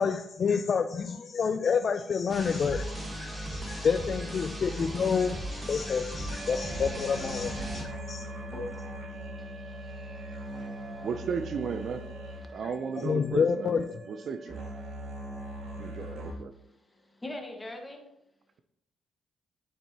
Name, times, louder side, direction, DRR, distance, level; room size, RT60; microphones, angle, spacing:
voice 1, 0.0-8.2 13.0-13.9, left 6 dB, 50° left, 9 dB, 0.4 m, -29 dB
sound 1, 2.3-7.8, right 1 dB, 20° right, 1.4 m, -37 dB
sound 2, 6.3-16.3, right 1 dB, 85° right, 2.6 m, -40 dB
voice 2, 8.5-8.9 9.4-11.1 12.4-12.6 16.1-18.0, left 1 dB, 15° left, 2 dB, 1.3 m, -44 dB
voice 3, 11.0-12.1 12.5-14.6 15.8-16.5, right 6 dB, 55° right, 10 dB, 0.4 m, -34 dB
11.0 x 4.4 x 2.9 m, 0.82 s
cardioid pair, 90°, 0 cm